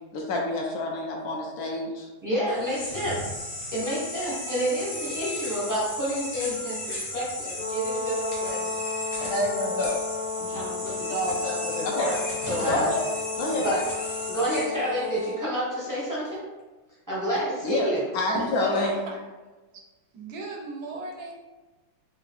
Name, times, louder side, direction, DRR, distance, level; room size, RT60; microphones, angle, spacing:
voice 1, 0.1-2.1 11.8-12.1 12.7-13.0 13.4-13.7 17.6-17.9 18.1-19.0, left 2 dB, 65° left, 0 dB, 1.0 m, -27 dB
voice 2, 2.2-3.3 3.7-8.7 9.2-10.0 10.4-12.2 12.4-12.9 13.6-13.8 14.3-16.4 17.1-18.0, equal, 20° right, -8 dB, 0.4 m, -29 dB
sound 1, 2.5-15.3, left 1 dB, 50° left, 1.3 m, -36 dB
Brass instrument, 7.5-15.5, left 4 dB, 85° left, 1.4 m, -34 dB
voice 3, 18.3-19.2 19.7-19.8 20.1-21.3, right 2 dB, 75° right, 0 dB, 0.9 m, -36 dB
3.6 x 2.4 x 3.4 m, 1.2 s
omnidirectional pair, 2.1 m